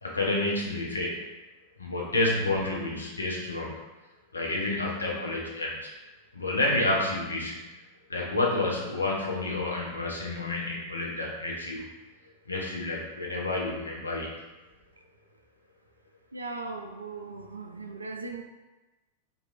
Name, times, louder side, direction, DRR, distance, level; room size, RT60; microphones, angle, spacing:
voice 1, 0.0-1.2 1.8-3.7 4.3-5.9 6.3-7.7 8.1-11.9 12.5-14.3, left 2 dB, 80° left, -2 dB, 0.6 m, -29 dB
voice 2, 16.3-18.4, right 3 dB, 80° right, 4 dB, 0.3 m, -38 dB
3.0 x 2.6 x 2.4 m, 1.1 s
figure-of-eight pair, 90°, 0 cm